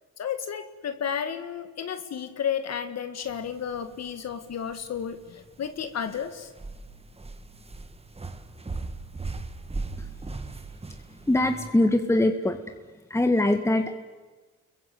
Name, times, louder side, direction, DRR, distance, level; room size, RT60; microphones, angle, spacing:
voice 1, 0.2-6.5, left 8 dB, 60° left, 9 dB, 1.9 m, -32 dB
sound 1, 3.3-11.7, right 3 dB, 20° right, 1.9 m, -39 dB
voice 2, 11.3-12.8 13.1-14.0, left 1 dB, 10° left, 6 dB, 1.9 m, -23 dB
30.0 x 22.5 x 8.4 m, 1.3 s
cardioid pair, 90°, 30 cm